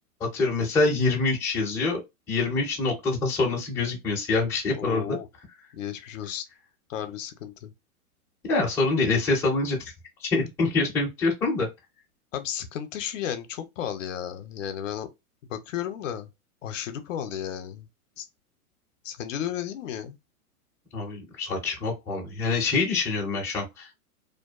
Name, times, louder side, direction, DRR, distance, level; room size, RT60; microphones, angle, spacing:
voice 1, 0.2-2.0 2.3-5.2 8.4-9.8 10.2-11.7 20.9-23.9, left 3 dB, 5° left, 0.5 m, -25 dB
voice 2, 4.7-5.3 5.7-6.4 6.9-7.7 12.3-15.1 15.5-16.3 16.6-17.9 18.2-18.3 19.0-20.2, left 10 dB, 60° left, 0.6 m, -33 dB
2.5 x 2.2 x 2.3 m
hypercardioid pair, 130°, 44 cm